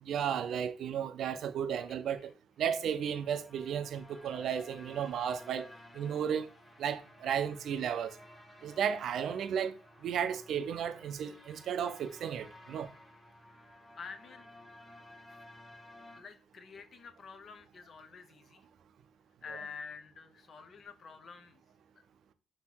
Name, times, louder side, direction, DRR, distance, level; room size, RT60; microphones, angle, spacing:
voice 1, 0.0-2.3 2.6-5.7 5.9-6.5 6.8-8.2 8.6-9.8 10.0-12.9 19.5-19.6, right 8 dB, 70° right, 0.4 m, -34 dB
sound 1, 2.7-16.2, left 1 dB, 10° left, 1.0 m, -55 dB
voice 2, 14.0-14.5 15.3-15.4 16.2-18.6 19.4-21.6, left 5 dB, 50° left, 0.7 m, -48 dB
3.5 x 2.8 x 4.5 m
cardioid pair, 90°, 0 cm